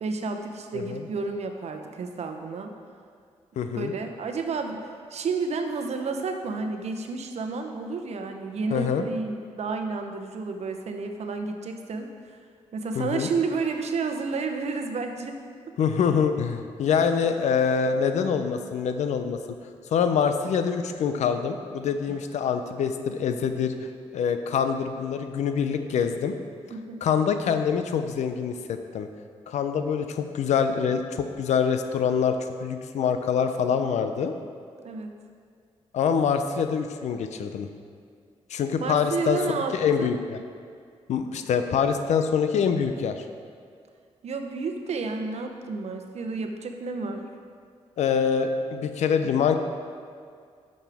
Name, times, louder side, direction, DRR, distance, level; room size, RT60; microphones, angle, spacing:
voice 1, 0.0-2.7 3.7-12.1 12.7-15.4 15.7-15.8 22.1-22.2 26.7-27.0 34.8-35.2 38.8-39.7 40.0-40.2 44.2-47.3, right 4 dB, 65° right, 5 dB, 0.9 m, -31 dB
voice 2, 3.6-3.9 8.7-9.0 12.9-13.3 15.8-19.4 19.9-23.7 24.1-26.3 27.0-29.1 29.5-34.3 35.9-37.7 38.5-39.4 39.7-40.4 41.1-43.2 48.0-49.6, left 6 dB, 80° left, 8 dB, 0.6 m, -25 dB
11.5 x 6.5 x 3.5 m, 2.2 s
cardioid pair, 60°, 12 cm